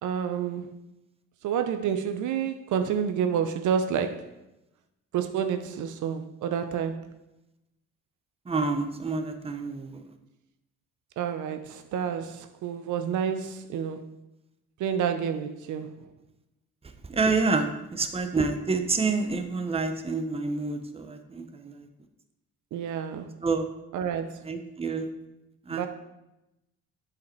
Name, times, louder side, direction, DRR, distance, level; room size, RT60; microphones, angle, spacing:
voice 1, 0.0-0.7 1.4-4.3 5.1-7.1 11.2-14.1 14.8-16.1 22.7-23.3 23.9-24.4 25.7-25.9, right 8 dB, 75° right, 8 dB, 0.7 m, -29 dB
voice 2, 8.5-10.0 17.1-21.9 23.4-23.7 24.4-25.1 25.7-25.9, right 3 dB, 20° right, 7 dB, 0.7 m, -28 dB
7.3 x 5.0 x 4.5 m, 0.94 s
cardioid pair, 90°, 30 cm